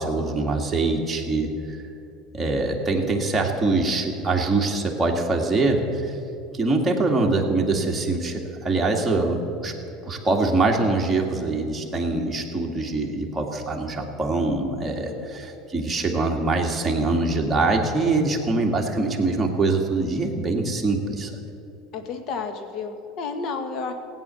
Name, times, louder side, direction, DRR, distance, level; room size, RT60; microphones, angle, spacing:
voice 1, 0.0-1.8 2.3-6.1 6.5-9.7 10.0-15.1 15.3-15.5 15.7-21.3, right 3 dB, 15° right, -1 dB, 2.1 m, -23 dB
voice 2, 14.8-15.3 21.9-23.9, left 4 dB, 50° left, 6 dB, 1.6 m, -32 dB
16.5 x 9.0 x 7.0 m, 2.7 s
supercardioid pair, 110°, 0 cm